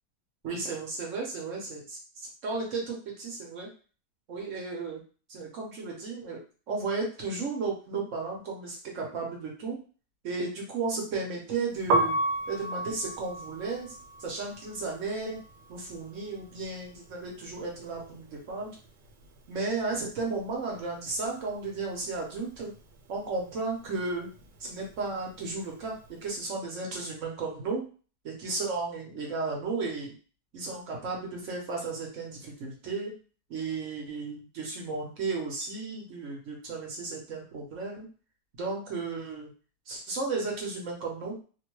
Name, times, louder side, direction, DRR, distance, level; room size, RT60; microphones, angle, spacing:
voice 1, 0.4-3.7 4.3-5.0 5.3-6.4 6.7-9.8 10.2-12.1 12.5-15.4 15.7-18.8 19.5-22.7 23.1-24.3 24.6-26.0 26.2-27.8 28.2-30.1 30.5-33.1 33.5-38.1 38.6-39.5 39.9-41.4, right 3 dB, 60° right, -1 dB, 1.0 m, -34 dB
Piano, 11.8-17.7 18.0-19.6 19.8-26.3, right 2 dB, 85° right, 1.2 m, -34 dB
2.9 x 2.1 x 3.0 m, 0.38 s
omnidirectional pair, 1.8 m